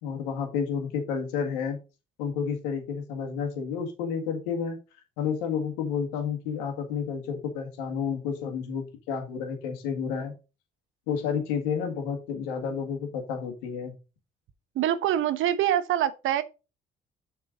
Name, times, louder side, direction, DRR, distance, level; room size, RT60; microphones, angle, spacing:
voice 1, 0.0-1.8 2.2-4.8 5.2-10.3 11.1-13.9, left 6 dB, 90° left, 1.8 m, -30 dB
voice 2, 14.7-16.4, right 11 dB, 70° right, 1.0 m, -25 dB
7.1 x 4.4 x 5.2 m
hypercardioid pair, 55°, 21 cm